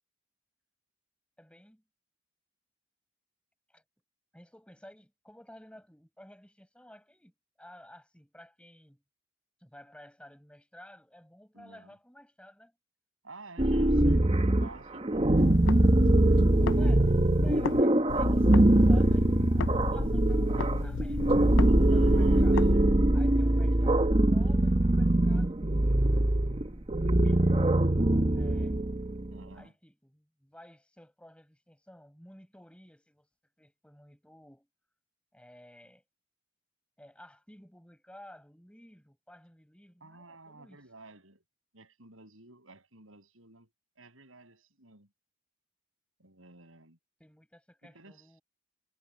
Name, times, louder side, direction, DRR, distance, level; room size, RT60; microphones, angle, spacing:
voice 1, 1.4-1.8 3.7-3.8 4.3-9.0 9.6-12.7 16.7-22.7 23.1-27.6 28.3-28.8 29.5-33.3 33.6-34.7 35.3-36.0 37.0-40.8 47.2-48.4, left 1 dB, 5° left, 6.9 m, -54 dB
voice 2, 11.5-11.9 13.2-15.5 21.6-23.0 29.3-29.7 40.0-41.4 41.7-43.7 43.9-45.1 46.2-47.0 47.8-48.3, right 2 dB, 80° right, 6.5 m, -52 dB
sound 1, 13.6-29.4, right 1 dB, 30° right, 0.9 m, -23 dB
sound 2, 15.4-17.8 18.1-22.7, left 5 dB, 65° left, 0.4 m, -36 dB
head